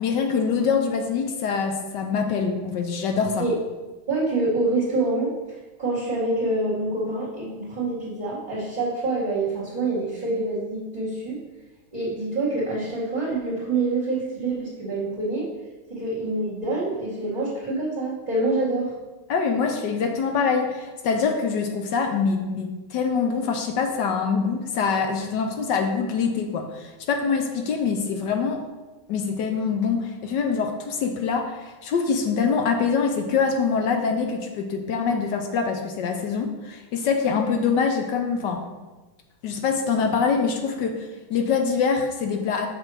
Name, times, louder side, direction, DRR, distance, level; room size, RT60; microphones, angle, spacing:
voice 1, 0.0-3.5 19.3-28.7 29.1-38.6 39.4-42.7, left 5 dB, 65° left, 4 dB, 1.3 m, -24 dB
voice 2, 4.1-11.4 11.9-15.5 15.9-18.9, right 2 dB, 20° right, -11 dB, 2.3 m, -26 dB
7.4 x 3.5 x 6.2 m, 1.2 s
omnidirectional pair, 2.3 m